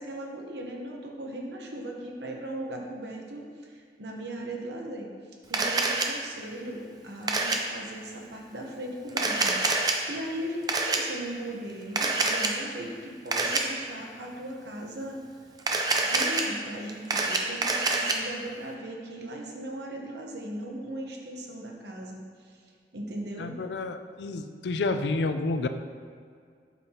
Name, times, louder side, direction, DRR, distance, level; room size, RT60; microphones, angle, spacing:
voice 1, 0.0-5.1 5.5-15.2 16.0-22.6 22.9-23.5, right 1 dB, 75° right, 0 dB, 1.0 m, -38 dB
Camera, 5.5-6.1 7.3-7.6 9.1-9.9 10.7-11.0 12.0-12.5 13.3-13.6 15.6-16.4 16.9-18.1, right 3 dB, 20° right, 0.5 m, -26 dB
voice 2, 23.4-25.7, left 3 dB, 80° left, 8 dB, 0.4 m, -29 dB
8.3 x 5.6 x 2.9 m, 2.2 s
head